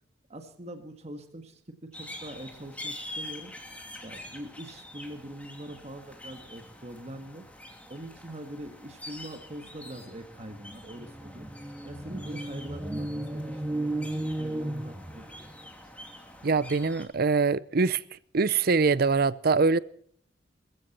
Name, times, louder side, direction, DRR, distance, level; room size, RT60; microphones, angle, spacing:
voice 1, 0.3-3.5 4.0-7.4 7.9-11.5 11.8-15.5, right 1 dB, 35° right, 1.7 m, -43 dB
sound 1, 1.9-17.1, left 1 dB, 10° left, 2.8 m, -46 dB
sound 2, 10.2-10.3 10.5-15.6, right 1 dB, 15° right, 0.8 m, -34 dB
voice 2, 16.4-18.0 18.3-19.8, right 4 dB, 55° right, 0.6 m, -23 dB
21.0 x 15.0 x 4.4 m
head